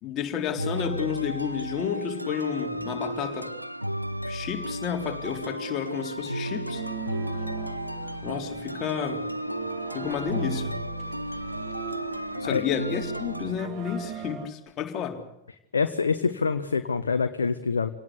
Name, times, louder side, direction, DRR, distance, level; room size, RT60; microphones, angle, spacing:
voice 1, 0.0-3.5 4.3-6.8 8.2-9.2 9.9-10.8 12.4-15.2, left 8 dB, 35° left, 4 dB, 3.8 m, -31 dB
sound 1, 0.6-13.5, equal, 90° right, 0.9 m, -33 dB
sound 2, 6.7-14.5, right 9 dB, 40° right, 2.6 m, -40 dB
voice 2, 15.7-17.9, left 5 dB, 75° left, 8 dB, 1.3 m, -25 dB
28.0 x 18.5 x 8.3 m, 0.86 s
figure-of-eight pair, 90°, 0 cm